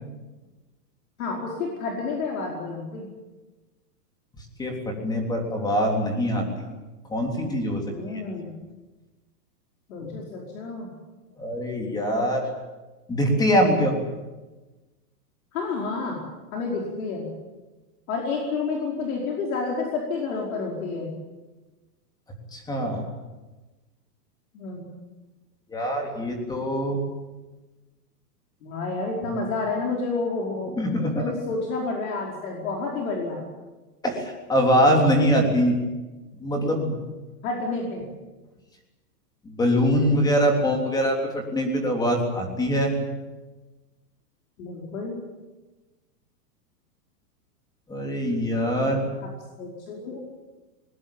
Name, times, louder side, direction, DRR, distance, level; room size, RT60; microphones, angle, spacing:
voice 1, 1.2-3.1 7.9-8.5 9.9-10.9 15.5-16.2 16.5-17.3 18.1-21.1 24.5-24.9 28.6-30.7 31.2-33.4 37.4-38.0 44.6-45.2 49.6-50.2, left 4 dB, 55° left, -1 dB, 5.1 m, -29 dB
voice 2, 4.6-6.7 7.1-7.8 11.4-12.4 13.1-14.0 22.5-23.0 25.7-27.0 30.8-31.3 34.0-35.8 36.4-37.0 39.4-43.0 47.9-49.0, equal, 10° left, 2 dB, 3.4 m, -23 dB
21.0 x 20.0 x 9.2 m, 1.2 s
supercardioid pair, 165°, 49 cm